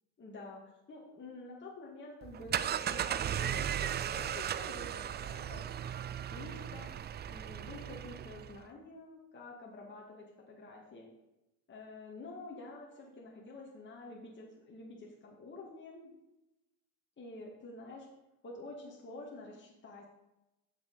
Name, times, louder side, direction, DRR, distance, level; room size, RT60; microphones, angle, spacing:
voice 1, 0.2-0.6 0.9-5.7 6.3-6.9 7.3-11.1 11.7-16.2 17.2-18.1 18.4-20.1, left 2 dB, 30° left, -3 dB, 2.0 m, -49 dB
sound 1, 2.2-8.6, right 9 dB, 30° right, 0.4 m, -36 dB
8.1 x 6.1 x 5.4 m, 0.94 s
supercardioid pair, 75°, 36 cm